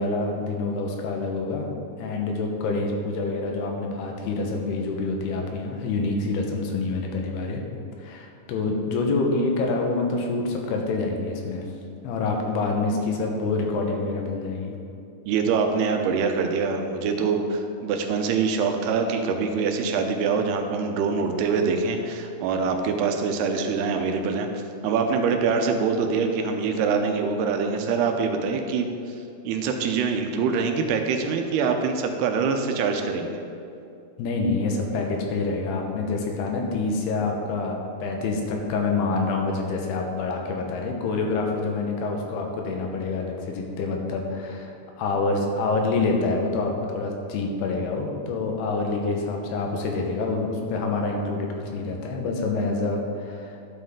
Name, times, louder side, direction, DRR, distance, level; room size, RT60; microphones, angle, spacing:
voice 1, 0.0-1.7 2.0-7.6 8.0-11.7 12.0-14.7 34.2-53.5, left 3 dB, 80° left, 1 dB, 3.1 m, -27 dB
voice 2, 15.3-24.5 24.8-28.9 29.5-33.4, right 5 dB, 85° right, 5 dB, 2.8 m, -24 dB
11.5 x 7.8 x 3.7 m, 2.6 s
omnidirectional pair, 4.6 m